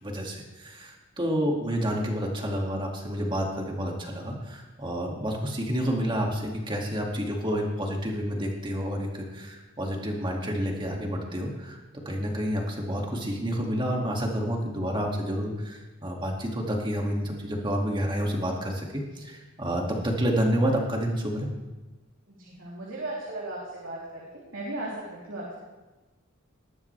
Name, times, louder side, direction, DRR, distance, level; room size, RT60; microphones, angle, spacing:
voice 1, 0.0-11.8 12.1-21.5, equal, 25° right, 0 dB, 2.2 m, -29 dB
voice 2, 22.3-24.3 24.5-25.6, right 2 dB, 70° right, -6 dB, 3.3 m, -36 dB
19.5 x 13.0 x 3.3 m, 1.2 s
head